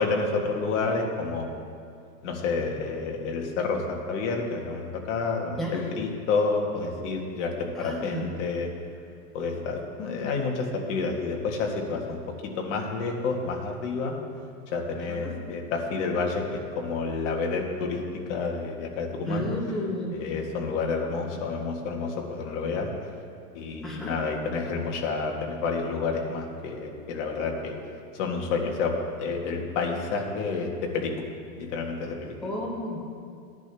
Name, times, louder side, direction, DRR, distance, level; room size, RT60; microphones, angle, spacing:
voice 1, 0.0-1.5 2.2-8.7 9.3-12.2 12.6-14.1 14.7-18.0 18.3-19.5 20.1-22.9 23.6-27.8 28.1-28.9 29.2-31.1 31.6-32.3, left 4 dB, 45° left, 1 dB, 1.7 m, -29 dB
voice 2, 5.6-5.9 7.7-8.3 15.1-15.3 19.3-20.1 23.8-24.1 32.4-33.0, equal, ahead, -4 dB, 0.5 m, -32 dB
15.0 x 10.5 x 3.5 m, 2.4 s
hypercardioid pair, 155°, 48 cm